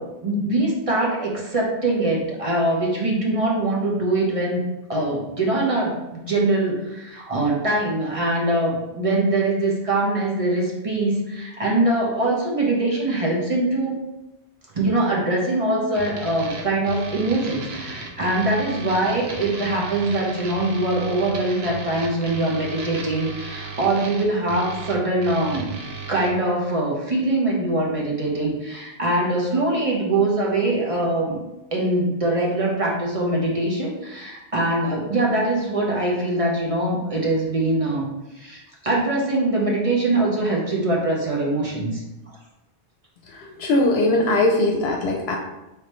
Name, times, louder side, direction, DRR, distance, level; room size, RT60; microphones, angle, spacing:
voice 1, 0.0-4.6 4.9-14.0 14.7-25.7 26.1-31.4 31.7-38.1 38.3-42.0, right 2 dB, 35° right, -3 dB, 0.9 m, -23 dB
sound 1, 15.9-26.3, right 4 dB, 80° right, 1.0 m, -35 dB
voice 2, 43.3-45.4, left 2 dB, 80° left, 1 dB, 0.8 m, -20 dB
4.9 x 3.4 x 3.0 m, 0.98 s
omnidirectional pair, 1.0 m